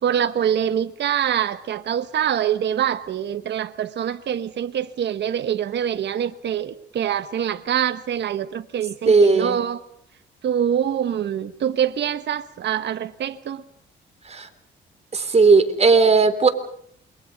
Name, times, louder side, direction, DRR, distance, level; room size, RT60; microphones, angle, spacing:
voice 1, 0.0-9.8 10.4-13.6, right 9 dB, 60° right, 11 dB, 1.3 m, -24 dB
voice 2, 9.1-9.6 14.3-14.5 15.1-16.5, right 4 dB, 35° right, 8 dB, 3.7 m, -16 dB
28.0 x 23.0 x 5.4 m, 0.65 s
cardioid pair, 90°, 20 cm